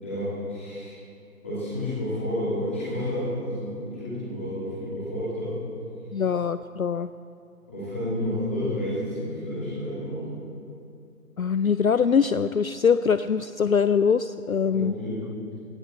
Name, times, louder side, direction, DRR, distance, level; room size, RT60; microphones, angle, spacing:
voice 1, 0.0-0.9 1.4-5.5 7.7-10.2 14.7-15.2, left 1 dB, 10° left, -11 dB, 2.6 m, -30 dB
voice 2, 6.1-7.1 11.4-15.0, left 6 dB, 60° left, 12 dB, 0.5 m, -23 dB
18.0 x 15.5 x 4.3 m, 2.5 s
figure-of-eight pair, 180°, 47 cm